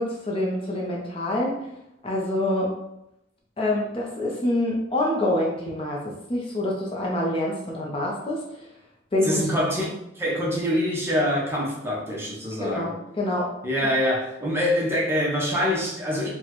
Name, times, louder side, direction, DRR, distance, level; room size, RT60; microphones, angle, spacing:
voice 1, 0.0-1.6 2.0-2.7 3.6-8.4 9.1-9.5 12.6-13.9, left 1 dB, 30° left, 0.5 m, -26 dB
voice 2, 9.2-9.9 10.2-12.9 13.6-16.3, equal, 15° right, 0.7 m, -25 dB
4.1 x 2.1 x 2.9 m
head